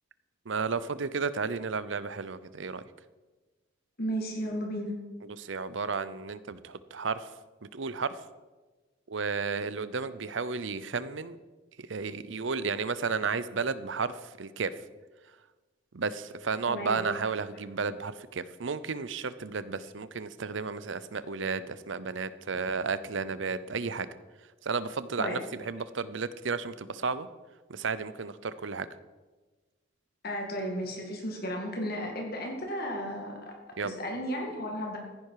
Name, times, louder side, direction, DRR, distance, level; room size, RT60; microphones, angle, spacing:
voice 1, 0.5-2.8 5.4-7.3 7.7-8.2 9.1-11.4 11.9-14.7 15.9-24.1 24.6-27.3 27.7-28.9 33.8-33.9, right 5 dB, 65° right, 15 dB, 0.7 m, -33 dB
voice 2, 4.0-5.0 16.7-17.0 25.2-25.4 30.2-33.6 33.8-35.0, equal, 50° left, 1 dB, 2.2 m, -34 dB
15.5 x 10.5 x 4.8 m, 1.2 s
head